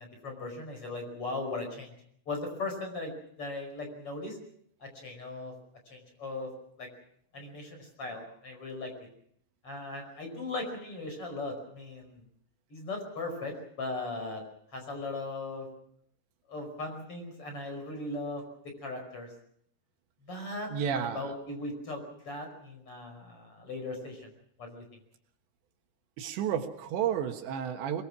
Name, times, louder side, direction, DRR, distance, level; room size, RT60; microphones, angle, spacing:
voice 1, 0.0-1.9 2.3-3.1 3.4-4.4 4.8-5.5 5.9-6.5 6.8-6.9 7.3-8.9 9.6-12.2 12.7-14.4 14.7-15.7 16.5-19.3 20.2-24.3 24.6-24.8, left 2 dB, 30° left, 4 dB, 5.9 m, -38 dB
voice 2, 20.7-21.3 26.2-28.0, right 8 dB, 80° right, 7 dB, 3.7 m, -31 dB
23.0 x 22.5 x 6.1 m, 0.67 s
omnidirectional pair, 5.1 m